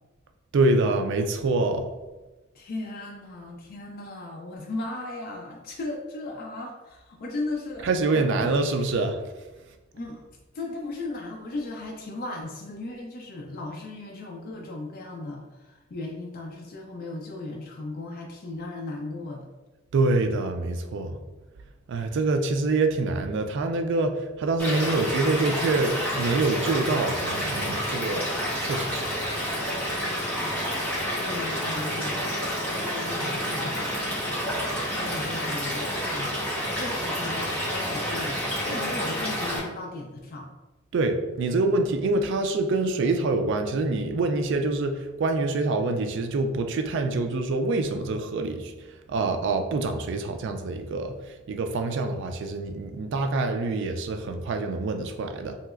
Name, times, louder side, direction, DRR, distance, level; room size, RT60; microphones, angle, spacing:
voice 1, 0.5-1.9 7.8-9.2 19.9-21.2 21.9-28.3 28.6-29.1 40.9-48.7 49.1-51.1 51.5-55.6, right 3 dB, 65° right, 6 dB, 0.3 m, -25 dB
voice 2, 2.5-7.9 8.1-8.5 9.9-10.2 10.5-19.5 22.1-22.2 31.0-32.4 32.8-34.0 34.4-40.5, left 2 dB, 45° left, 0 dB, 0.4 m, -36 dB
Stream / Liquid, 24.6-39.6, equal, 5° left, 0.9 m, -29 dB
3.1 x 2.8 x 2.3 m, 1.1 s
head